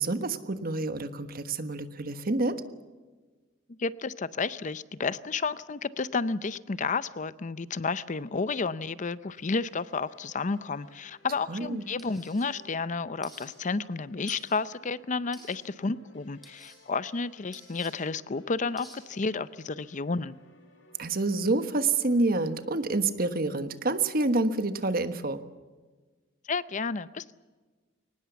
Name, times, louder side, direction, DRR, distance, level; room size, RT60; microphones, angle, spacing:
voice 1, 0.0-2.6 11.5-11.9 21.0-25.4, right 3 dB, 50° right, 10 dB, 1.4 m, -28 dB
voice 2, 3.8-20.4 26.5-27.3, left 4 dB, 40° left, 16 dB, 0.6 m, -31 dB
sound 1, 9.3-23.0, left 1 dB, 75° left, 5.6 m, -59 dB
sound 2, 12.0-12.5 13.2-13.5 14.3-14.6 15.3-15.6 16.4-16.8 17.5-17.9 18.8-19.0, equal, ahead, 6.6 m, -50 dB
23.0 x 19.5 x 7.1 m, 1.3 s
head